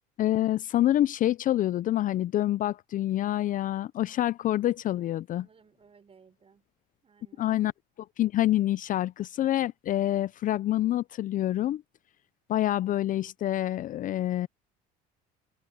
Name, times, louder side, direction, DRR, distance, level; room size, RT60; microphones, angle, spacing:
voice 1, 0.2-5.4 7.4-7.7 8.2-11.8 12.5-14.5, left 13 dB, 45° left, 0.5 m, -27 dB
voice 2, 4.9-6.7 7.0-7.5, right 6 dB, 30° right, 6.1 m, -60 dB
open air
supercardioid pair, 100°, 19 cm